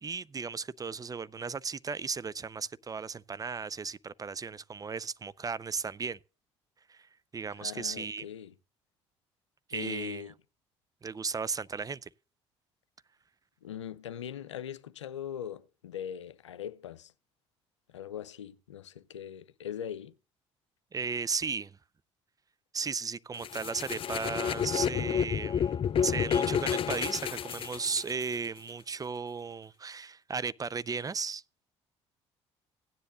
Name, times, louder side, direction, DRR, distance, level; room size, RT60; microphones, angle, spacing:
voice 1, 0.0-6.2 6.9-7.1 7.3-8.3 9.7-10.2 11.0-12.1 20.9-21.8 22.7-31.4, right 5 dB, 25° right, 0.5 m, -35 dB
voice 2, 7.6-8.5 9.7-10.3 13.6-17.1 17.9-20.1, left 9 dB, 85° left, 0.5 m, -41 dB
sound 1, 23.4-28.3, left 8 dB, 40° left, 0.4 m, -30 dB
16.5 x 9.9 x 2.5 m
figure-of-eight pair, 50°, 15 cm